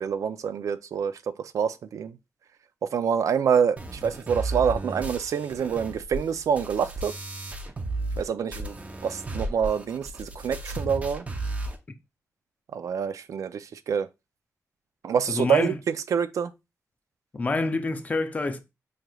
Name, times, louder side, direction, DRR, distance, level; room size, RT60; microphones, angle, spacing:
voice 1, 0.0-2.2 2.8-7.1 8.2-8.8 9.0-11.3 12.7-14.1 15.0-15.7 16.1-16.5, right 7 dB, 85° right, 0.3 m, -26 dB
sound 1, 3.8-8.2 8.5-11.8, right 2 dB, 25° right, 0.6 m, -34 dB
voice 2, 15.3-15.8 17.3-18.6, left 3 dB, 30° left, 0.5 m, -27 dB
4.8 x 3.1 x 2.3 m
wide cardioid pair, 130°, 5 cm